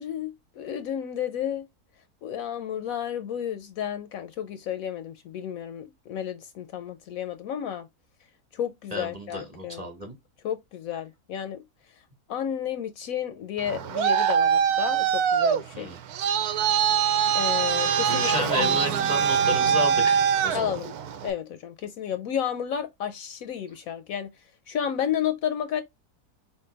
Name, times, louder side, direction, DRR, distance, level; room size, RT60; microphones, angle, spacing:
voice 1, 0.0-1.7 2.2-7.9 8.5-9.9 10.4-11.6 12.3-15.9 17.3-18.3 18.6-18.8 20.5-21.0 21.2-24.3 24.7-25.8, left 9 dB, 70° left, 0.9 m, -32 dB
voice 2, 8.9-10.1 15.7-16.0 18.1-20.8, left 1 dB, 25° right, 1.2 m, -32 dB
Traffic noise roadway noise, 13.6-21.3, right 7 dB, 75° right, 1.1 m, -23 dB
4.4 x 3.2 x 3.2 m
omnidirectional pair, 1.7 m